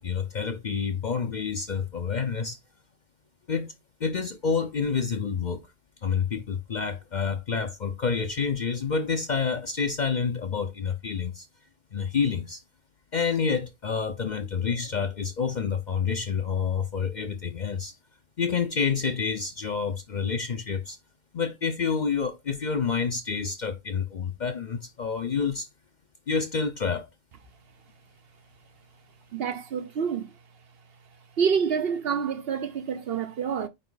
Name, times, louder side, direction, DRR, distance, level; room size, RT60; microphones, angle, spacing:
voice 1, 0.0-2.6 3.5-3.7 4.0-5.7 6.0-11.5 11.9-12.6 13.1-17.9 18.4-21.0 21.3-25.7 26.3-27.1, left 6 dB, 45° left, 0.6 m, -28 dB
voice 2, 29.3-30.3 31.4-33.7, right 7 dB, 60° right, 0.8 m, -27 dB
9.2 x 3.1 x 3.9 m
omnidirectional pair, 1.3 m